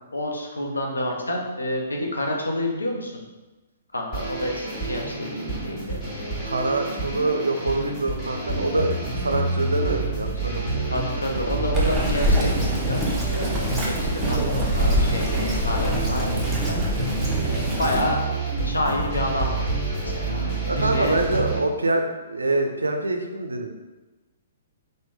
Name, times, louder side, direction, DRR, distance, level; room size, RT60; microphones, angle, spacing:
voice 1, 0.1-3.2 3.9-6.0 6.9-7.0 10.9-16.8 17.4-18.2 18.6-21.2, left 1 dB, 90° left, 1 dB, 0.6 m, -29 dB
sound 1, 4.1-21.6, right 3 dB, 20° left, 1.4 m, -28 dB
voice 2, 6.4-10.9 20.1-20.2 20.7-23.8, right 2 dB, 85° right, 4 dB, 0.4 m, -25 dB
Bird vocalization bird call bird song, 11.7-18.0, equal, 15° right, 0.7 m, -25 dB
3.1 x 2.1 x 3.5 m, 1.1 s
figure-of-eight pair, 125°, 0 cm